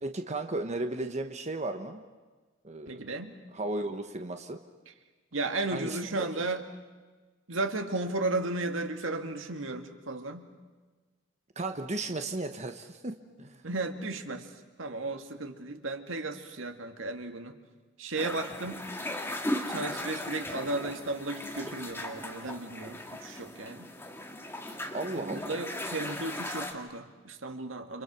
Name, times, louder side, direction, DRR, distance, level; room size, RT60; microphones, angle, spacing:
voice 1, 0.0-2.0 2.6-3.0 3.5-4.6 5.7-6.3 11.5-13.6 24.9-25.6, right 2 dB, 35° right, 6 dB, 1.3 m, -35 dB
voice 2, 2.9-3.4 5.3-6.7 7.5-10.5 13.6-14.5 14.8-17.6 18.0-18.9 19.7-23.9 25.2-28.0, right 2 dB, 75° right, 6 dB, 2.0 m, -34 dB
sound 1, 18.2-26.7, left 1 dB, 10° left, 2.1 m, -37 dB
30.0 x 27.5 x 6.1 m, 1.3 s
head